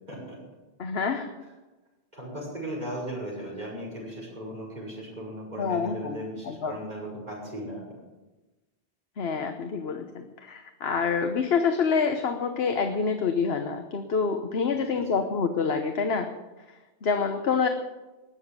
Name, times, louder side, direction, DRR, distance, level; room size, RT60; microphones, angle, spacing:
voice 1, 0.1-0.4 2.1-7.8, equal, 45° right, -3 dB, 6.2 m, -37 dB
voice 2, 0.8-1.3 5.6-6.2 6.4-6.8 9.2-16.3 16.7-17.7, left 5 dB, 80° left, 6 dB, 1.3 m, -27 dB
20.0 x 7.1 x 8.2 m, 1.1 s
omnidirectional pair, 1.0 m